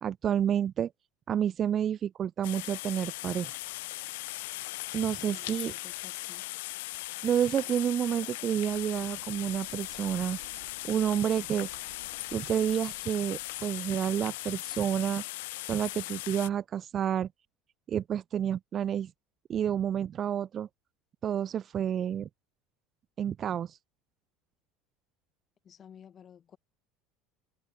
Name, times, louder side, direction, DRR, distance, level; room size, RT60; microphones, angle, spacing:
voice 1, 0.0-0.9 1.3-3.6 4.9-5.7 7.2-10.4 10.8-11.7 12.3-15.2 15.7-17.3 17.9-19.1 19.5-20.7 21.2-22.3 23.2-23.8, right 9 dB, 40° right, 0.3 m, -29 dB
sound 1, 2.4-16.5, left 21 dB, 70° left, 0.4 m, -39 dB
voice 2, 4.9-6.5 25.6-26.6, left 8 dB, 40° left, 6.6 m, -54 dB
sound 2, 8.7-14.3, right 29 dB, 70° right, 4.1 m, -56 dB
hypercardioid pair, 75°, 0 cm